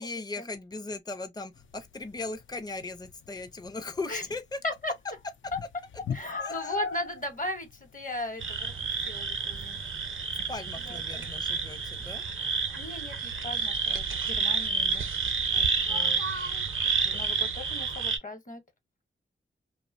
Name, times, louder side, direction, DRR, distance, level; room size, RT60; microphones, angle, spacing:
voice 1, 0.0-4.6 6.4-6.7 10.5-12.2, left 3 dB, 20° left, 0.5 m, -38 dB
sound 1, 1.5-12.3, left 5 dB, 70° left, 0.5 m, -43 dB
voice 2, 6.1-8.7 9.1-9.8 10.9-11.3 12.8-15.1 15.5-16.2 17.0-18.6, left 1 dB, 40° left, 0.9 m, -37 dB
sound 2, 8.4-18.2, right 5 dB, 80° right, 0.6 m, -30 dB
2.8 x 2.0 x 2.5 m
wide cardioid pair, 105°, 20 cm